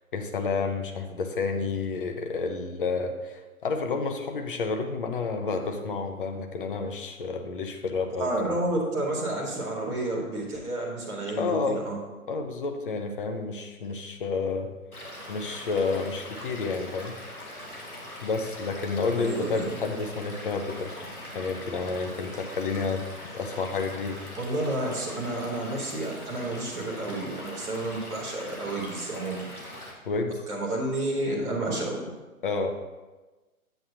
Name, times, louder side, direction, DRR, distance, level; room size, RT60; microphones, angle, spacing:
voice 1, 0.1-8.3 11.4-11.8 12.3-14.7 15.3-17.1 18.2-23.0 23.3-24.2 30.1-30.4 32.4-32.7, left 4 dB, 35° left, 5 dB, 0.8 m, -30 dB
voice 2, 8.2-12.0 19.1-19.7 24.4-29.5 30.5-32.0, right 2 dB, 10° right, -6 dB, 0.8 m, -30 dB
Stream / Liquid, 14.9-29.9, left 1 dB, 85° left, 2.0 m, -42 dB
8.5 x 8.0 x 2.8 m, 1.2 s
figure-of-eight pair, 130°, 43 cm